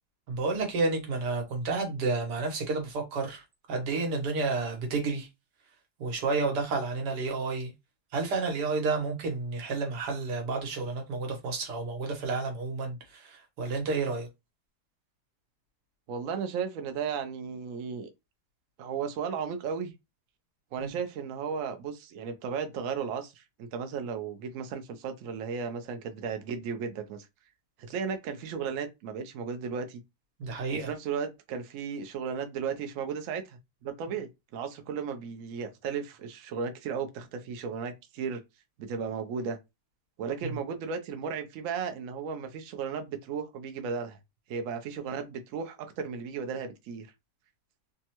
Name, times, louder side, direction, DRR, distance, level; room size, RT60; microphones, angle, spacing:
voice 1, 0.3-3.4 3.7-5.3 6.0-7.7 8.1-14.3 20.8-20.9 30.4-30.9 40.4-40.5, right 3 dB, 85° right, 1.5 m, -30 dB
voice 2, 16.1-18.1 18.8-19.9 20.7-27.3 27.8-30.0 30.9-38.4 38.8-39.6 40.2-44.2 44.5-47.1, right 6 dB, 65° right, 0.9 m, -35 dB
3.4 x 2.1 x 2.8 m
omnidirectional pair, 1.7 m